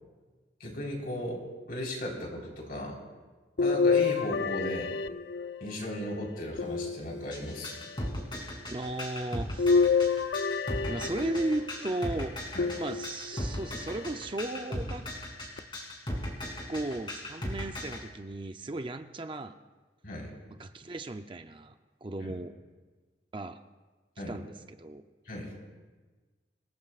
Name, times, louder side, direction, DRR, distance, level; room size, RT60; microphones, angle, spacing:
voice 1, 0.6-1.4 1.7-3.0 3.6-4.9 5.6-7.8 12.5-12.7 20.0-20.3 22.2-22.3 24.2-24.4 25.2-25.5, equal, 55° left, -1 dB, 4.3 m, -36 dB
sound 1, 3.6-5.8 6.6-7.6 9.6-11.6 12.6-13.4 14.1-14.2 15.6-15.7, left 5 dB, 70° left, 0.5 m, -28 dB
sound 2, 7.3-18.0, left 1 dB, 30° left, 3.2 m, -37 dB
voice 2, 8.7-9.8 10.9-12.4 12.8-15.1 16.7-19.6 20.6-21.7 22.0-22.5 23.3-23.6 24.3-25.0, right 2 dB, 30° right, 7 dB, 0.5 m, -35 dB
26.5 x 18.0 x 2.4 m, 1.3 s
head